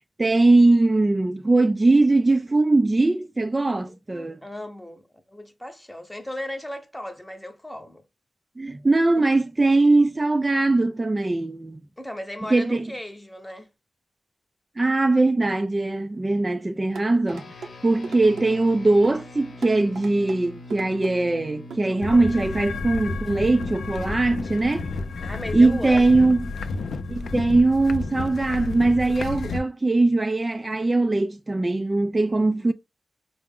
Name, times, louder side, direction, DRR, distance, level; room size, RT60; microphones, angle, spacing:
voice 1, 0.2-4.4 8.6-11.8 12.5-12.9 14.8-17.5 17.8-24.9 25.5-26.4 27.1-32.7, right 2 dB, 30° right, 0.3 m, -21 dB
voice 2, 4.1-8.0 12.0-13.7 21.9-22.2 25.2-26.2, left 1 dB, 10° left, 0.9 m, -36 dB
sound 1, 17.0-17.7 18.0-18.5 19.0-19.2 19.6-20.4 20.7-21.1 21.7-21.9 22.3-22.4, right 4 dB, 90° right, 0.7 m, -37 dB
sound 2, 17.3-26.9, left 2 dB, 55° left, 0.8 m, -45 dB
sound 3, 22.0-29.6, left 3 dB, 75° left, 0.4 m, -31 dB
4.5 x 2.0 x 3.6 m
cardioid pair, 55°, 0 cm